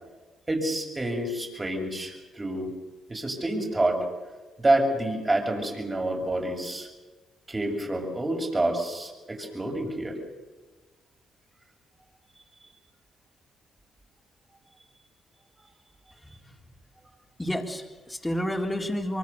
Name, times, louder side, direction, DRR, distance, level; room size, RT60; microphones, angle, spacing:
voice 1, 0.5-2.7 3.1-4.0 4.6-6.9 7.5-10.2, right 1 dB, 20° right, 3 dB, 6.8 m, -28 dB
voice 2, 17.4-19.2, equal, 10° left, 1 dB, 4.0 m, -30 dB
24.5 x 24.5 x 6.8 m, 1.3 s
supercardioid pair, 70°, 0 cm